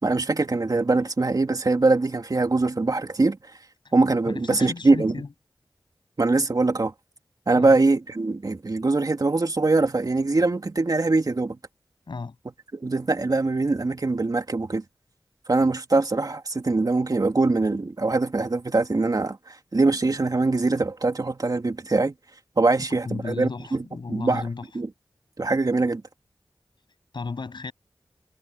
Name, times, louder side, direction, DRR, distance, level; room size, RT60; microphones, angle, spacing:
voice 1, 0.0-3.4 3.9-5.1 6.2-6.9 7.5-11.6 12.7-14.8 15.5-22.1 22.6-23.8 24.1-24.4 24.7-24.9 25.4-26.0, right 3 dB, 55° right, 2.6 m, -22 dB
voice 2, 4.2-5.3 7.5-7.8 12.1-12.3 23.0-24.7 27.1-27.7, left 4 dB, 75° left, 7.9 m, -34 dB
wide cardioid pair, 50°, 8 cm